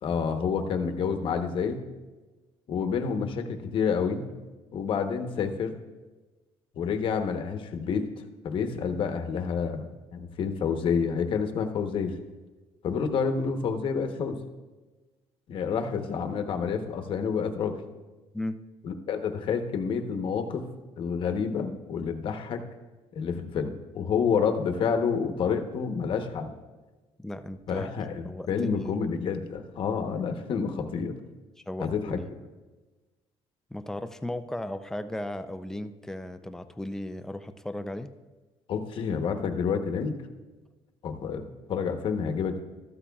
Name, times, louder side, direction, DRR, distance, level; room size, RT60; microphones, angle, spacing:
voice 1, 0.0-1.8 2.7-4.3 4.7-5.8 6.7-8.1 8.4-12.2 12.8-14.4 15.5-17.8 18.8-20.7 21.0-22.6 23.1-26.6 27.7-31.1 31.8-32.2 38.7-40.2 41.0-42.6, left 6 dB, 55° left, 6 dB, 1.0 m, -29 dB
voice 2, 27.2-27.9 28.2-28.9 31.7-32.3 33.7-38.1, left 1 dB, 5° left, 9 dB, 0.4 m, -36 dB
13.5 x 12.5 x 2.4 m, 1.2 s
cardioid pair, 135°, 11 cm